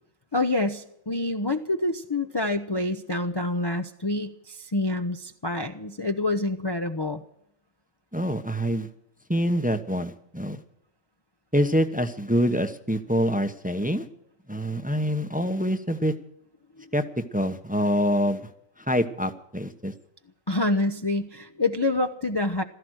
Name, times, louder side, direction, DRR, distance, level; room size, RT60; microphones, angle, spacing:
voice 1, 0.3-7.2 16.8-16.9 20.5-22.6, left 2 dB, 25° left, 6 dB, 0.7 m, -27 dB
voice 2, 8.1-8.9 9.3-10.6 11.5-14.1 14.5-16.1 16.9-18.5 18.8-19.9, equal, 10° right, 8 dB, 0.9 m, -25 dB
16.0 x 14.0 x 6.4 m, 0.74 s
omnidirectional pair, 1.3 m